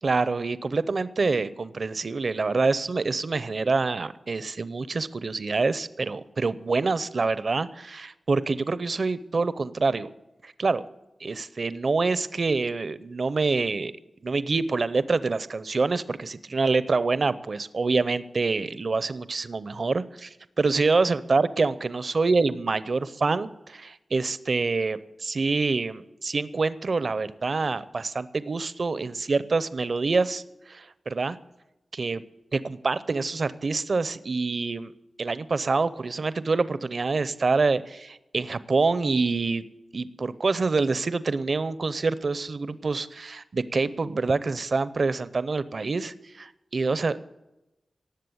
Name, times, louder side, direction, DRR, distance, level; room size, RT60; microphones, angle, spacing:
voice 1, 0.0-10.1 10.4-10.8 11.2-13.9 14.2-30.4 30.7-31.4 31.9-32.2 32.5-34.9 35.2-39.6 39.9-47.2, right 3 dB, 60° right, 15 dB, 0.7 m, -26 dB
18.5 x 7.6 x 8.0 m, 0.96 s
wide cardioid pair, 70°, 0 cm